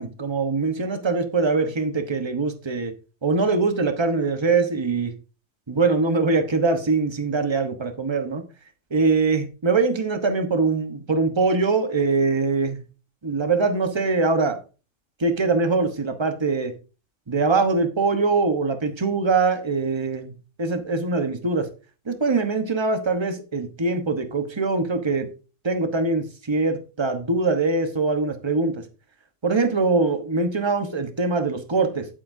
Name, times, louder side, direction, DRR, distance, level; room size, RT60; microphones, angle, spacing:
voice 1, 0.0-2.9 3.2-5.1 5.7-8.4 8.9-12.8 13.2-14.6 15.2-16.7 17.3-20.3 20.6-21.7 22.1-25.3 25.6-28.8 29.4-32.1, right 3 dB, 20° right, 1.1 m, -23 dB
11.5 x 9.6 x 2.7 m
omnidirectional pair, 1.3 m